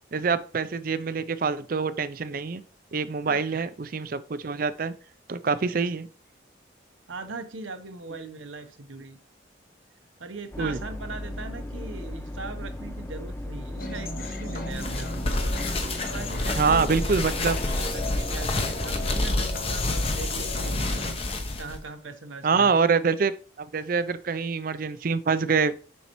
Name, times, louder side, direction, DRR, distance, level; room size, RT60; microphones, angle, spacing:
voice 1, 0.1-2.6 2.9-4.9 5.3-6.1 10.6-10.8 16.6-17.6 22.4-25.7, right 5 dB, 50° right, 14 dB, 0.4 m, -25 dB
voice 2, 3.3-3.7 5.7-5.8 7.1-9.2 10.2-15.4 16.1-17.1 17.9-21.1 21.6-22.8, right 3 dB, 90° right, 7 dB, 0.9 m, -40 dB
sound 1, 10.5-19.3, left 1 dB, 10° left, 0.4 m, -36 dB
sound 2, 13.8-21.1, left 2 dB, 50° left, 1.1 m, -37 dB
sound 3, 14.7-21.8, left 2 dB, 30° left, 0.8 m, -29 dB
7.1 x 5.4 x 3.0 m, 0.39 s
head